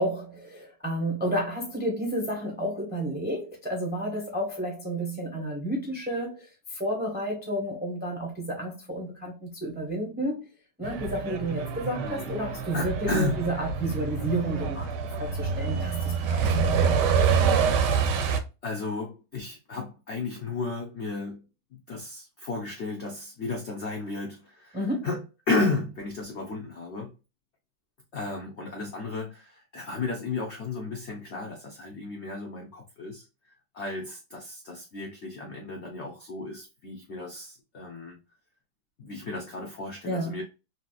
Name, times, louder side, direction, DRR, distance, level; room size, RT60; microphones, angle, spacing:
voice 1, 0.0-10.5 10.8-14.9 15.2-16.9 24.7-25.1 40.0-40.3, right 1 dB, 10° right, 0.5 m, -31 dB
Truck, 10.8-18.4, right 6 dB, 75° right, 1.1 m, -26 dB
voice 2, 12.0-12.4 12.7-13.4 16.7-17.0 17.9-18.3 18.6-21.4 21.7-27.1 28.1-38.2 39.0-40.4, left 3 dB, 65° left, 0.6 m, -33 dB
3.2 x 2.8 x 2.3 m
omnidirectional pair, 2.0 m